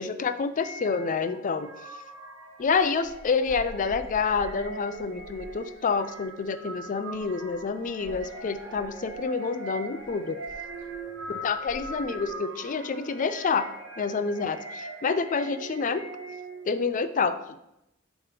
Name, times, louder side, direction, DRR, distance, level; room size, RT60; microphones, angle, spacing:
voice 1, 0.0-1.7 2.6-10.4 11.4-13.7 14.0-16.0 16.7-17.6, left 5 dB, 40° left, 12 dB, 0.4 m, -28 dB
sound 1, 0.6-16.8, right 1 dB, 90° right, 1.3 m, -41 dB
sound 2, 2.6-12.3, equal, 60° right, 1.0 m, -49 dB
7.3 x 3.0 x 5.0 m, 0.84 s
head